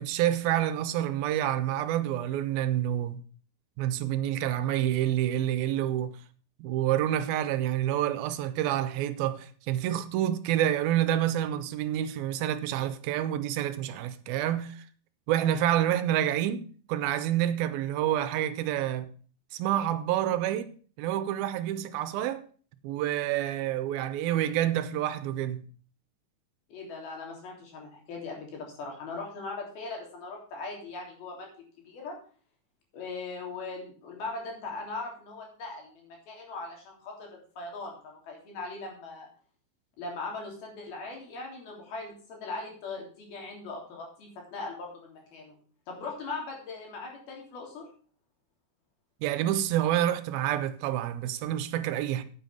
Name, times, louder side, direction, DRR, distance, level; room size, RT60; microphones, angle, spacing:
voice 1, 0.0-3.2 3.8-6.2 6.6-14.8 15.3-19.1 19.5-22.5 22.8-25.6 49.2-52.2, right 12 dB, 80° right, 2.5 m, -28 dB
voice 2, 26.7-31.5 31.9-32.2 32.9-39.3 40.0-45.6 45.9-47.9, left 3 dB, 75° left, 5.2 m, -39 dB
9.4 x 8.9 x 5.2 m
omnidirectional pair, 4.4 m